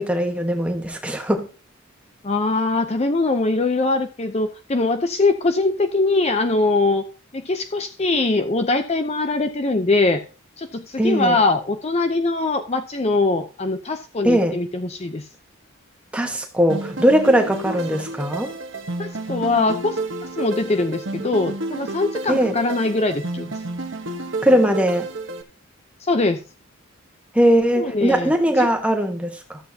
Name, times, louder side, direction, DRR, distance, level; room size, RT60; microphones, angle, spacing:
voice 1, 0.0-1.5 11.0-11.4 14.2-14.6 16.1-18.5 22.3-22.6 24.4-25.1 27.3-29.6, equal, 5° right, 1.2 m, -19 dB
voice 2, 2.2-7.0 7.3-10.2 10.6-15.2 19.0-20.0 20.4-23.5 26.0-26.4 27.8-28.7, left 3 dB, 30° left, 0.6 m, -22 dB
sound 1, 16.7-25.4, right 2 dB, 60° right, 1.1 m, -31 dB
14.0 x 7.7 x 2.8 m
head